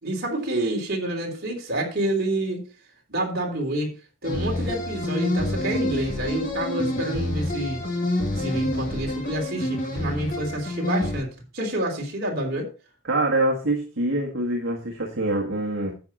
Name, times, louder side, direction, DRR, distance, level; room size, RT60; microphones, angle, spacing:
voice 1, 0.0-2.6 3.1-3.9 4.2-7.8 8.3-11.3 11.5-12.7, right 1 dB, 50° right, 3.4 m, -28 dB
sound 1, 4.2-11.2, left 1 dB, 40° left, 2.5 m, -27 dB
voice 2, 13.0-15.9, right 1 dB, 65° right, 1.7 m, -25 dB
10.5 x 7.6 x 4.2 m
head